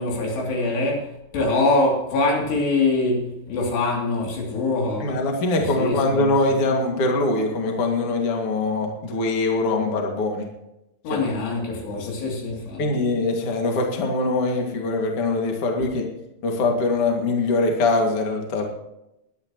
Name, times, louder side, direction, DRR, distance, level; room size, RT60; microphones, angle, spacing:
voice 1, 0.0-5.2 5.6-6.6 11.0-12.8, left 2 dB, 80° left, 5.1 m, -24 dB
voice 2, 5.0-10.4 11.1-11.2 11.9-12.1 12.8-16.0 16.4-18.7, left 2 dB, 40° left, 2.5 m, -23 dB
21.0 x 10.5 x 3.0 m
omnidirectional pair, 4.8 m